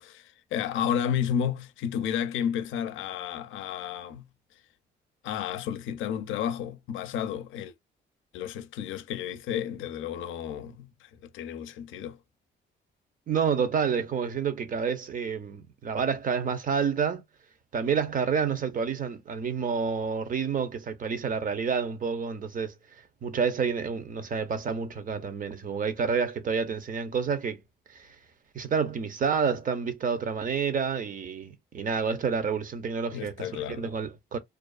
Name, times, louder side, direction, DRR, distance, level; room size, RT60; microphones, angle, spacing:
voice 1, 0.0-4.2 5.2-7.7 8.3-12.2 33.1-33.9, left 9 dB, 80° left, 0.5 m, -32 dB
voice 2, 13.3-17.2 17.7-22.7 23.2-27.6 27.9-28.2 28.5-34.4, right 6 dB, 45° right, 0.6 m, -29 dB
2.4 x 2.3 x 2.3 m
cardioid pair, 90°, 20 cm